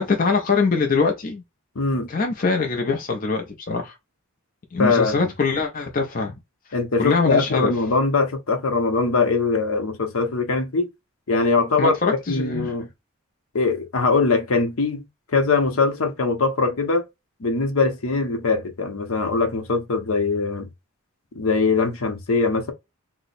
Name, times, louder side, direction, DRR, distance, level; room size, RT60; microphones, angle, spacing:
voice 1, 0.0-1.4 2.1-3.9 4.7-6.3 7.0-7.7 11.8-12.7, left 4 dB, 40° left, 0.5 m, -23 dB
voice 2, 1.7-2.1 4.8-5.3 6.7-10.9 11.3-11.9 12.3-12.9 13.5-17.0 17.4-20.7 21.3-22.7, left 4 dB, 70° left, 0.8 m, -22 dB
2.8 x 2.0 x 3.9 m
head